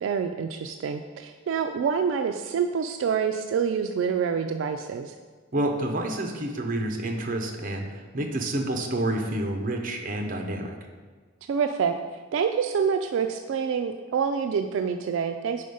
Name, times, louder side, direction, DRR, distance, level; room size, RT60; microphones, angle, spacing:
voice 1, 0.0-5.1 11.4-11.9 12.3-15.6, right 6 dB, 75° right, 6 dB, 0.3 m, -27 dB
voice 2, 5.5-10.7, right 1 dB, 45° right, 3 dB, 0.7 m, -29 dB
5.0 x 4.2 x 5.4 m, 1.5 s
head